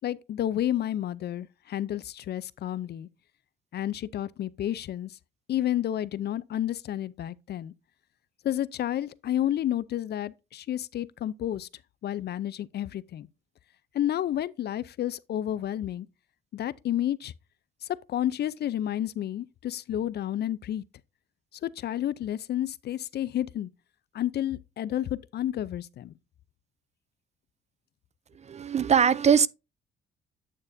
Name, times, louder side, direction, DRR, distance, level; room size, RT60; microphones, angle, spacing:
voice 1, 0.0-3.1 3.7-5.2 5.5-7.7 8.4-11.7 12.0-13.3 13.9-16.1 16.5-17.3 17.8-20.8 21.6-23.7 24.1-26.1, left 11 dB, 55° left, 0.5 m, -30 dB
voice 2, 28.5-29.5, right 7 dB, 35° right, 0.4 m, -21 dB
8.8 x 6.5 x 2.6 m
cardioid pair, 90°, 20 cm